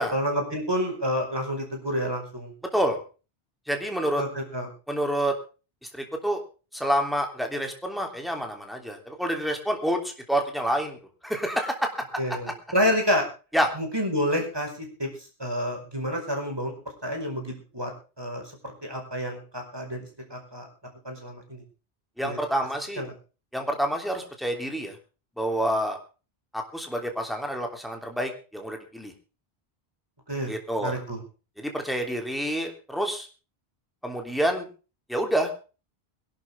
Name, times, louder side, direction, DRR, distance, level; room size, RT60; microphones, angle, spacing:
voice 1, 0.1-2.5 4.2-4.7 12.2-13.3 13.7-15.1 15.4-16.7 17.0-17.9 18.2-20.7 21.0-21.6 22.2-22.4 23.0-23.1 30.3-30.5 30.8-31.2, equal, 25° right, 2 dB, 5.2 m, -29 dB
voice 2, 3.7-4.2 4.9-5.3 5.9-6.4 6.7-11.0 11.2-11.9 13.5-13.7 22.2-23.0 23.5-24.9 25.4-26.0 26.5-29.1 30.5-31.0 31.6-33.3 34.0-34.7 35.1-35.5, equal, ahead, 3 dB, 3.3 m, -28 dB
21.5 x 12.0 x 3.7 m, 0.35 s
omnidirectional pair, 1.0 m